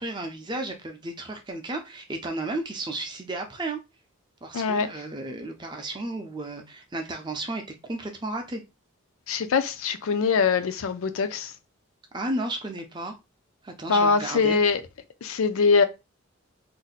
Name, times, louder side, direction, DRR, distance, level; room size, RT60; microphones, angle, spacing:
voice 1, 0.0-3.8 4.4-8.6 12.1-13.2 13.6-14.6, right 2 dB, 20° right, 0.5 m, -33 dB
voice 2, 4.5-4.9 9.3-11.5 13.9-14.8 15.2-15.8, left 5 dB, 75° left, 0.4 m, -23 dB
2.6 x 2.1 x 4.0 m
head